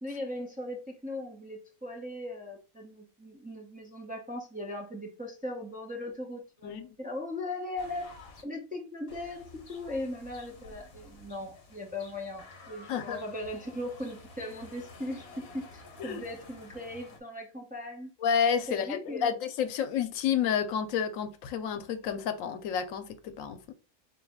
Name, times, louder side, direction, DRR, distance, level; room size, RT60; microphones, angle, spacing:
voice 1, 0.0-8.1 8.4-18.1 18.7-19.3, left 1 dB, 10° right, 0.5 m, -39 dB
voice 2, 6.6-6.9 12.9-13.2 16.0-16.2 18.2-23.7, left 8 dB, 85° left, 1.0 m, -30 dB
sound 1, 7.8-8.4 9.1-17.2, left 3 dB, 55° left, 1.0 m, -51 dB
3.9 x 2.7 x 3.5 m
omnidirectional pair, 1.3 m